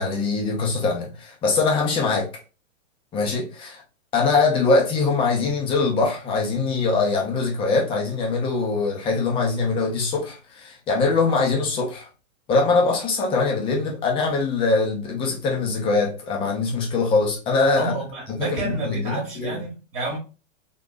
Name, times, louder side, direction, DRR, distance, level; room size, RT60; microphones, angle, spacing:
voice 1, 0.0-2.3 3.1-3.8 4.1-12.1 12.5-17.9 18.4-19.6, left 4 dB, 15° left, 0.7 m, -22 dB
voice 2, 17.8-20.2, right 3 dB, 30° right, 1.3 m, -30 dB
3.7 x 2.9 x 2.3 m
hypercardioid pair, 145°, 40 cm